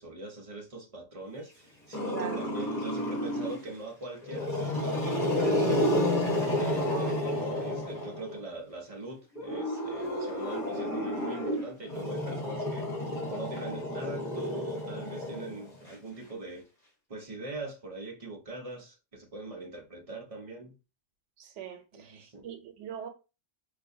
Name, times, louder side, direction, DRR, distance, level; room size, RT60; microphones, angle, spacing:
voice 1, 0.0-16.7 17.1-20.8 21.9-22.5, right 2 dB, 35° right, 0.8 m, -42 dB
Growling, 1.9-3.7 4.2-8.4 9.4-15.9, left 1 dB, 35° left, 1.5 m, -31 dB
voice 2, 2.1-2.5 6.9-7.2 21.4-23.1, right 7 dB, 85° right, 1.0 m, -41 dB
4.5 x 2.6 x 2.6 m
omnidirectional pair, 1.2 m